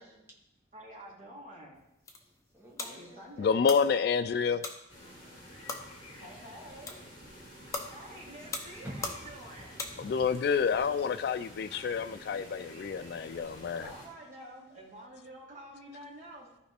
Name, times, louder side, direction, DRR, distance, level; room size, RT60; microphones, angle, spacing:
voice 1, 0.7-1.8 2.8-3.9 6.2-7.0 7.9-9.8 13.8-16.5, right 1 dB, 40° right, 2.8 m, -48 dB
sound 1, 1.8-10.4, left 3 dB, 15° left, 0.8 m, -43 dB
voice 2, 2.1-3.4 4.4-4.6 5.0-5.4 8.4-8.5 8.8-9.3 9.8-10.1 13.0-13.2, equal, 15° right, 1.7 m, -49 dB
voice 3, 3.4-4.6 10.0-13.9, left 6 dB, 55° left, 0.3 m, -28 dB
sound 2, 4.9-14.1, equal, 35° left, 3.6 m, -50 dB
14.5 x 5.0 x 3.4 m
head